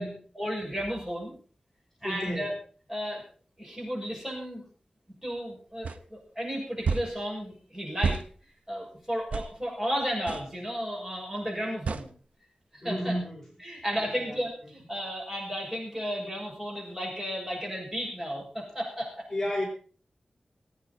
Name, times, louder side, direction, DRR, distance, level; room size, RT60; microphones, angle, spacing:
voice 1, 0.3-1.3 2.0-2.5 2.9-3.2 3.6-4.6 5.2-8.2 8.7-12.1 12.7-13.2 13.6-19.3, equal, 20° right, -1 dB, 6.6 m, -33 dB
voice 2, 2.0-2.5 12.8-13.4 14.0-14.4 19.3-19.6, equal, 15° left, -2 dB, 4.8 m, -32 dB
sound 1, 5.8-6.0 6.8-7.1 8.0-8.3 9.3-9.5 10.3-10.5 11.9-12.1, right 5 dB, 90° right, 0.7 m, -29 dB
21.0 x 9.4 x 4.3 m, 0.42 s
wide cardioid pair, 85°, 2 cm